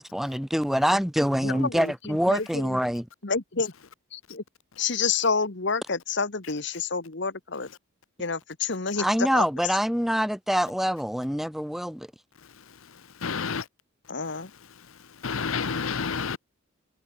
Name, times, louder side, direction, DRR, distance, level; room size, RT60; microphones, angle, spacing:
voice 1, 0.0-3.0 9.0-12.1, equal, ahead, 0.8 m, -25 dB
voice 2, 1.4-2.8 3.2-3.7 4.1-4.4 4.8-7.7 8.2-9.5 14.1-14.5, left 5 dB, 55° left, 1.3 m, -29 dB
voice 3, 13.2-13.6 15.2-16.4, left 5 dB, 75° left, 0.9 m, -29 dB
head